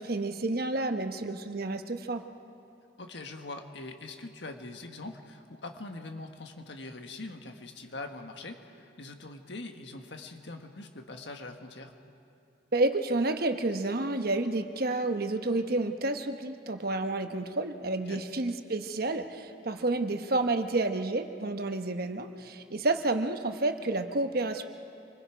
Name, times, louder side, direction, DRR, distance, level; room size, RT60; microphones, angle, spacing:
voice 1, 0.0-2.2 12.7-24.6, right 2 dB, 55° right, 7 dB, 1.1 m, -30 dB
voice 2, 3.0-11.9 18.1-18.2, left 2 dB, 70° left, 5 dB, 1.6 m, -43 dB
27.0 x 21.5 x 5.1 m, 2.7 s
head